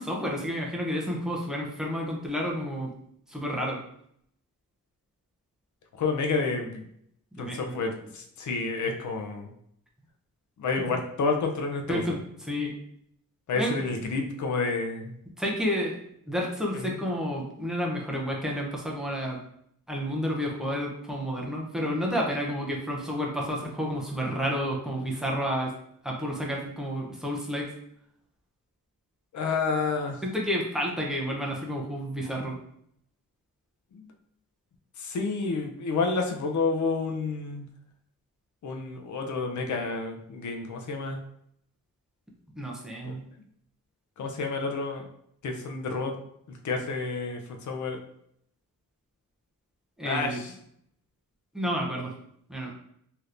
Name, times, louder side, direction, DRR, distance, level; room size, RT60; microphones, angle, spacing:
voice 1, 0.0-2.9 3.3-3.8 7.3-7.8 10.8-10.9 11.9-12.7 13.5-13.7 15.4-16.0 16.3-19.4 19.9-25.7 26.0-27.7 30.2-32.6 42.6-43.2 50.0-50.4 51.5-52.1 52.5-52.7, equal, ahead, -2 dB, 0.5 m, -30 dB
voice 2, 5.9-6.9 7.4-9.5 10.6-12.2 13.5-15.1 16.7-17.0 29.3-30.2 33.9-34.1 35.0-37.7 38.6-41.2 43.0-43.1 44.2-45.0 45.4-46.2 46.5-48.0 50.0-50.5, left 4 dB, 60° left, 3 dB, 0.5 m, -30 dB
3.4 x 2.8 x 2.5 m, 0.71 s
wide cardioid pair, 170°, 33 cm